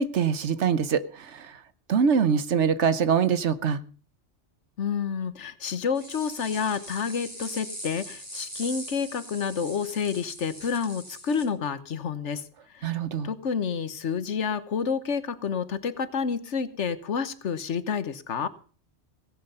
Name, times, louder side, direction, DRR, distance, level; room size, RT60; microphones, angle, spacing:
voice 1, 0.0-1.5 1.9-3.8 12.8-13.3, right 6 dB, 75° right, 13 dB, 1.3 m, -24 dB
voice 2, 4.8-12.4 12.7-12.9 13.2-18.5, left 6 dB, 80° left, 13 dB, 1.4 m, -29 dB
sound 1, 5.9-11.4, equal, 25° right, 6.4 m, -41 dB
17.0 x 10.5 x 5.6 m, 0.40 s
omnidirectional pair, 1.2 m